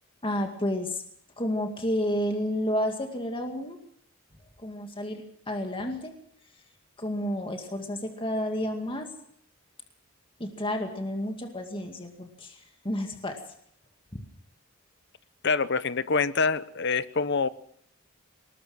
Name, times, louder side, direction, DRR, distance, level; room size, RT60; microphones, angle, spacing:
voice 1, 0.2-1.0 1.4-3.8 4.6-6.1 7.0-9.1 10.4-13.4 14.1-14.2, equal, 25° left, 4 dB, 2.2 m, -31 dB
voice 2, 15.4-17.5, left 4 dB, 55° left, 15 dB, 0.9 m, -25 dB
21.0 x 20.0 x 6.3 m, 0.66 s
head